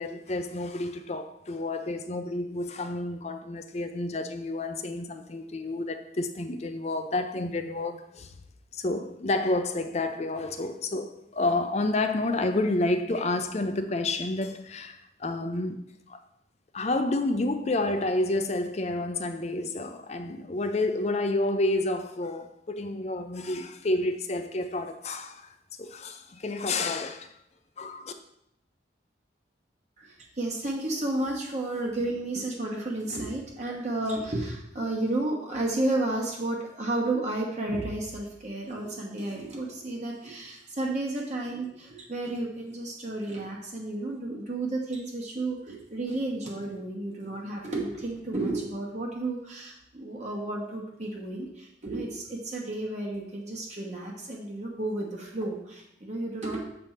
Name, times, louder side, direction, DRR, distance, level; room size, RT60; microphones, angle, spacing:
voice 1, 0.0-8.3 8.7-15.8 16.1-16.2 16.7-25.5 25.8-27.3 27.8-28.1, left 2 dB, 35° left, 0.5 m, -29 dB
voice 2, 30.0-56.6, right 2 dB, 40° right, 1.1 m, -32 dB
7.6 x 3.4 x 5.7 m
head